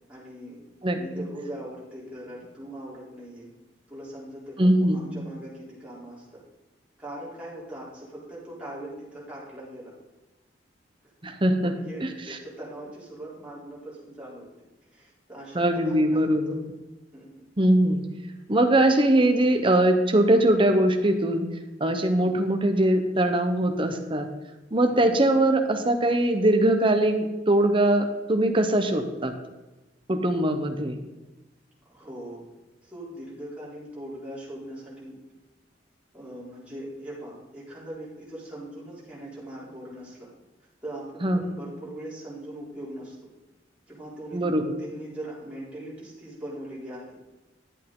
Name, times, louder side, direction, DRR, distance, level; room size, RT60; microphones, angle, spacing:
voice 1, 0.1-0.6 0.9-3.5 3.9-6.4 7.0-9.9 11.6-14.5 14.9-16.6 17.1-17.5 22.2-22.3 24.9-25.1 31.9-32.4 32.8-35.2 36.1-40.3 40.8-43.2 43.9-44.4 44.8-47.2, right 1 dB, 5° right, -8 dB, 3.6 m, -40 dB
voice 2, 0.8-1.2 4.6-5.1 11.2-11.7 12.0-12.4 15.5-16.6 17.6-18.0 18.5-21.5 21.8-24.3 24.7-29.3 30.1-31.0 41.2-41.4 44.3-44.8, right 1 dB, 30° right, 6 dB, 0.9 m, -22 dB
11.0 x 8.3 x 3.8 m, 1.1 s
head